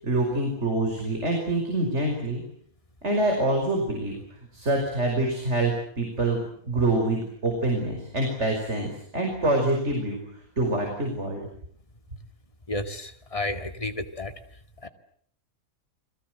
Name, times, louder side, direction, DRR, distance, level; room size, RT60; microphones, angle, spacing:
voice 1, 0.0-2.4 3.0-4.1 4.5-10.2 10.6-11.4, right 2 dB, 50° right, 2 dB, 5.8 m, -26 dB
voice 2, 12.7-14.3 14.8-14.9, left 2 dB, 25° left, 7 dB, 2.2 m, -32 dB
30.0 x 22.0 x 7.9 m, 0.64 s
omnidirectional pair, 1.5 m